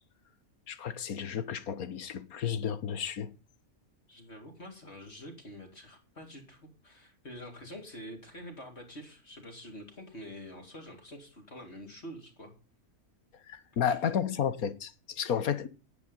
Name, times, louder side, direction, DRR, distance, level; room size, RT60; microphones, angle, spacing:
voice 1, 0.7-3.3 13.5-15.7, left 8 dB, 75° left, 1.6 m, -32 dB
voice 2, 4.1-12.5 13.7-14.0, equal, 45° left, 4.0 m, -47 dB
10.5 x 10.5 x 5.5 m
omnidirectional pair, 1.5 m